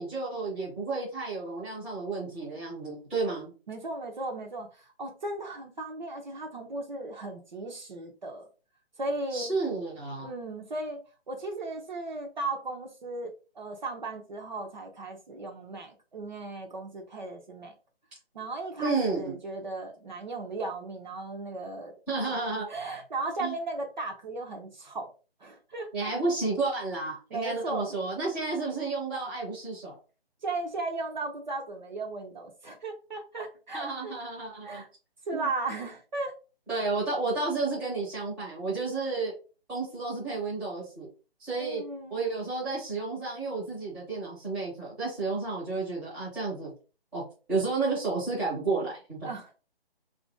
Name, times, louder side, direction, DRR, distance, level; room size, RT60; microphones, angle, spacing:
voice 1, 0.0-3.5 9.3-10.3 18.8-19.3 22.1-22.7 23.4-23.5 25.9-30.0 33.7-34.8 35.3-35.5 36.7-39.3 39.7-41.1 41.4-41.8 42.1-46.7 47.1-47.2 47.5-49.3, right 3 dB, 5° right, -9 dB, 0.7 m, -31 dB
voice 2, 3.7-8.5 9.0-9.6 10.2-11.0 11.3-17.7 18.3-21.9 22.2-22.3 22.7-25.1 25.4-26.1 27.3-27.9 30.4-34.1 34.6-34.9 35.3-36.3 41.6-42.3 49.2-49.6, right 2 dB, 45° right, 2 dB, 0.7 m, -36 dB
2.9 x 2.5 x 3.7 m, 0.34 s
figure-of-eight pair, 155°, 31 cm